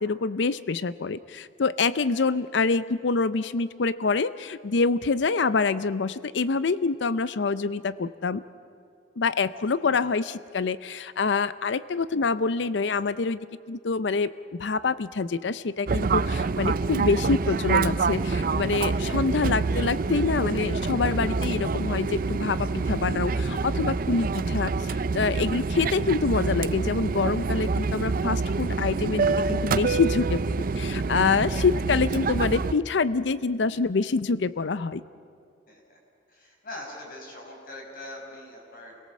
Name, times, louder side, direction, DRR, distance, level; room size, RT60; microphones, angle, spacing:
voice 1, 0.0-8.4 9.2-13.4 13.7-14.3 14.6-35.0, left 4 dB, 70° left, 16 dB, 0.5 m, -26 dB
voice 2, 1.9-2.3 18.7-19.3 23.9-24.0 35.7-36.0 36.3-38.9, left 1 dB, 50° left, 0 dB, 5.6 m, -43 dB
Fixed-wing aircraft airplane, 15.9-32.7, right 4 dB, 50° right, 0.5 m, -26 dB
28.5 x 18.0 x 7.4 m, 2.4 s
head